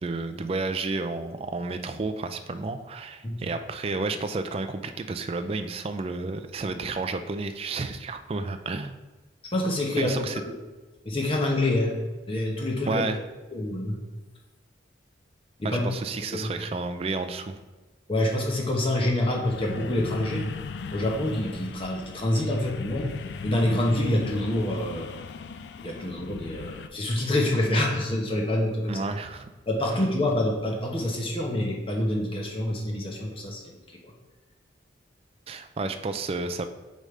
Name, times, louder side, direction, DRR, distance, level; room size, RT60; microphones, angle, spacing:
voice 1, 0.0-9.0 10.0-10.4 12.9-13.2 15.6-17.6 28.9-29.5 35.5-36.7, right 3 dB, 30° right, 7 dB, 0.3 m, -31 dB
voice 2, 9.5-10.1 10.5-10.6 11.0-12.0 12.3-13.0 13.5-13.9 15.6-15.8 16.3-16.5 18.1-20.5 20.9-23.1 23.4-25.1 25.8-29.0 29.7-33.8, left 1 dB, 30° left, -1 dB, 0.9 m, -26 dB
sound 1, 19.4-26.9, left 4 dB, 60° left, 0.3 m, -37 dB
6.3 x 5.1 x 3.2 m, 1.2 s
head